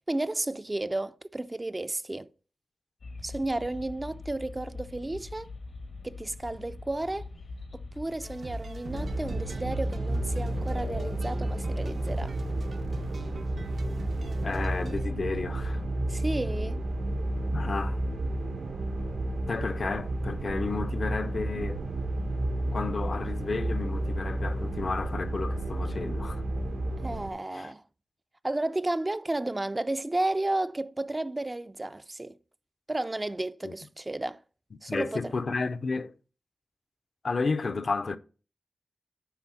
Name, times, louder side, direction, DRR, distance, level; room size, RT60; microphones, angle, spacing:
voice 1, 0.1-2.3 3.2-5.5 6.0-7.3 7.7-12.3 16.1-16.8 27.0-27.8 28.4-32.4 32.9-34.4 34.8-35.3, right 2 dB, 25° right, 0.4 m, -32 dB
sound 1, 3.0-11.1, left 3 dB, 85° left, 1.5 m, -43 dB
sound 2, 8.2-15.1, right 4 dB, 70° right, 0.8 m, -43 dB
sound 3, 8.9-27.3, right 1 dB, 85° right, 1.5 m, -31 dB
voice 2, 14.4-15.8 17.5-18.0 19.5-21.8 22.7-26.4 27.5-27.7 33.6-33.7 34.9-36.1 37.2-38.2, left 4 dB, 55° left, 0.6 m, -32 dB
9.6 x 3.5 x 6.0 m
wide cardioid pair, 90°, 0 cm